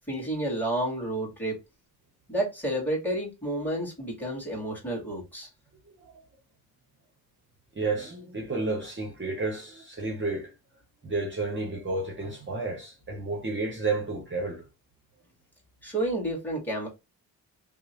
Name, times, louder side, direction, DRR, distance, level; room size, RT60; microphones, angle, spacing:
voice 1, 0.1-1.6 2.3-5.5 15.8-16.9, right 1 dB, 5° left, 1.7 m, -30 dB
voice 2, 7.7-10.5 11.0-14.6, right 3 dB, 30° right, 0.8 m, -31 dB
2.9 x 2.1 x 2.9 m
cardioid pair, 95°, 40 cm